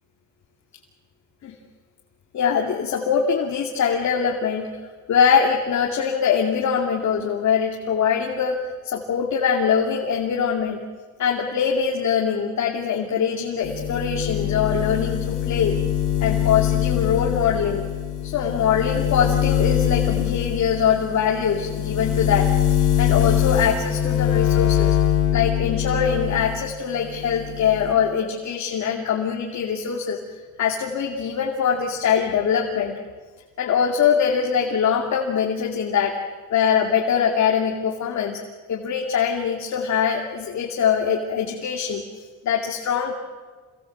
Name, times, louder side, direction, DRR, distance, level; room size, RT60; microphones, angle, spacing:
voice 1, 2.3-4.7 5.1-8.6 8.8-10.8 11.2-15.8 16.2-17.9 18.2-22.5 23.0-25.0 25.3-30.2 30.6-33.0 33.6-36.2 36.5-38.4 38.7-42.0 42.4-43.1, left 7 dB, 65° left, 0 dB, 2.6 m, -22 dB
sound 1, 13.6-26.6 26.9-27.9, left 10 dB, 80° left, 4.0 m, -23 dB
26.5 x 19.5 x 7.8 m, 1.4 s
cardioid pair, 90°, 30 cm